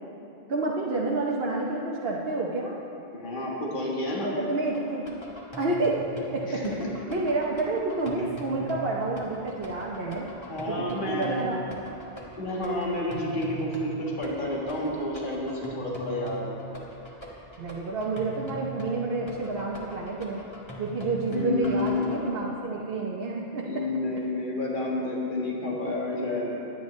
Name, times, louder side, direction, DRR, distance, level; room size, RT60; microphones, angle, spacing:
voice 1, 0.5-2.8 4.2-5.1 5.6-6.0 6.3-6.6 7.1-10.3 10.7-11.9 17.6-20.4 20.8-23.8, right 2 dB, 65° right, -3 dB, 1.1 m, -29 dB
voice 2, 3.1-4.3 6.5-6.9 10.3-11.5 12.4-16.6 21.3-22.1 23.6-26.5, left 2 dB, 50° left, -3 dB, 1.8 m, -30 dB
sound 1, 4.7-22.3, right 1 dB, 25° left, 1.8 m, -41 dB
21.5 x 9.4 x 3.2 m, 2.9 s
omnidirectional pair, 1.1 m